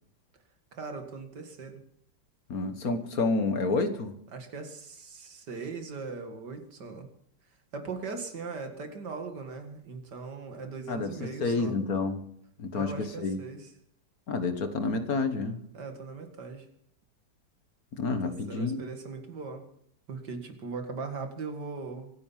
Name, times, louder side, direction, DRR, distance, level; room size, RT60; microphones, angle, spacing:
voice 1, 0.7-1.8 4.3-7.1 7.7-11.8 12.7-13.7 15.7-16.7 18.2-19.7 20.1-22.1, right 4 dB, 85° right, 6 dB, 2.7 m, -39 dB
voice 2, 2.5-4.1 10.9-12.2 12.6-13.4 14.3-15.6 17.9-18.8, left 3 dB, 60° left, 9 dB, 1.9 m, -29 dB
24.5 x 10.0 x 5.7 m, 0.70 s
omnidirectional pair, 1.8 m